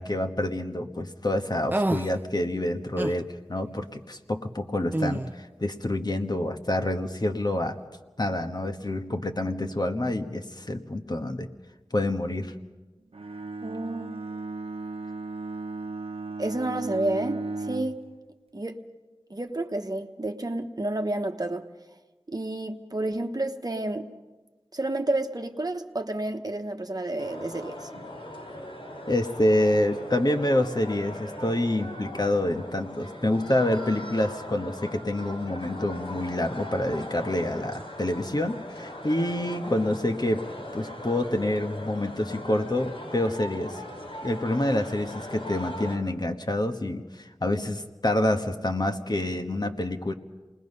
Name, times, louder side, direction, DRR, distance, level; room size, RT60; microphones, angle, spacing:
voice 1, 0.0-7.8 8.2-11.5 11.9-12.5 29.1-40.5 40.7-43.8 44.2-50.1, left 1 dB, 45° left, 5 dB, 1.4 m, -27 dB
sound 1, 1.7-2.1 3.0-3.2 4.9-5.3, right 1 dB, 20° right, 0.6 m, -27 dB
Bowed string instrument, 13.1-18.0, right 3 dB, 75° right, 0.8 m, -35 dB
voice 2, 13.6-14.1 16.4-18.1 18.5-18.8 19.3-21.7 22.3-24.1 24.7-27.9, right 2 dB, 40° right, 5 dB, 1.2 m, -30 dB
sound 2, 27.2-46.0, left 1 dB, 65° left, 4.4 m, -39 dB
27.5 x 20.0 x 5.5 m, 1.2 s
wide cardioid pair, 55°, 10 cm